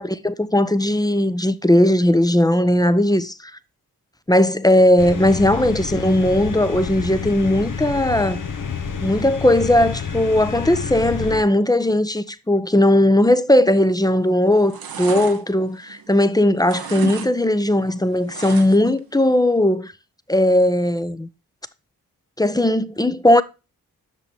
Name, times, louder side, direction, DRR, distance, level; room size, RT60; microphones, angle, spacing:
voice 1, 0.0-3.3 4.3-8.4 9.0-19.9 20.3-21.3 22.4-23.4, left 1 dB, 10° left, 0.8 m, -18 dB
sound 1, 5.0-11.4, left 6 dB, 55° left, 1.1 m, -29 dB
sound 2, 13.9-14.2 14.5-16.3 16.6-17.3 17.6-19.0 19.3-19.4, right 7 dB, 70° right, 1.1 m, -34 dB
7.6 x 6.1 x 3.3 m
supercardioid pair, 40°, 38 cm